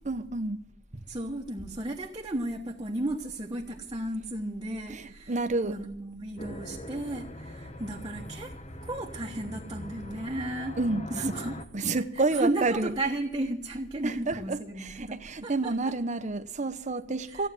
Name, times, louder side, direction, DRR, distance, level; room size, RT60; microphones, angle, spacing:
voice 1, 0.1-0.6 0.9-1.0 4.9-5.8 10.8-11.4 11.7-12.9 14.0-17.5, right 3 dB, 40° right, 1.0 m, -29 dB
voice 2, 1.1-10.8 11.1-11.6 12.0-16.0 17.2-17.5, right 1 dB, 25° right, 1.3 m, -34 dB
sound 1, 6.4-11.7, left 1 dB, 35° left, 1.2 m, -42 dB
15.5 x 9.0 x 7.5 m
head